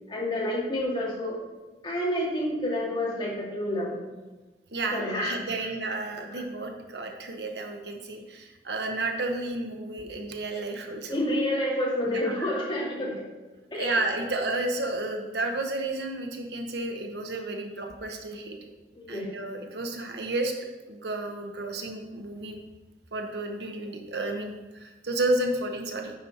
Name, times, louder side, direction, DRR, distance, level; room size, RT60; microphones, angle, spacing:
voice 1, 0.1-1.4 1.8-4.0 4.9-5.3 5.6-5.7 6.3-6.4 11.1-13.2 13.7-14.0 18.9-19.3, left 1 dB, 25° left, -5 dB, 2.3 m, -29 dB
voice 2, 4.7-11.2 12.1-12.5 13.7-18.7 19.1-20.5 20.9-22.6 23.1-26.1, right 2 dB, 75° right, 3 dB, 1.0 m, -32 dB
9.3 x 6.1 x 4.3 m, 1.2 s
head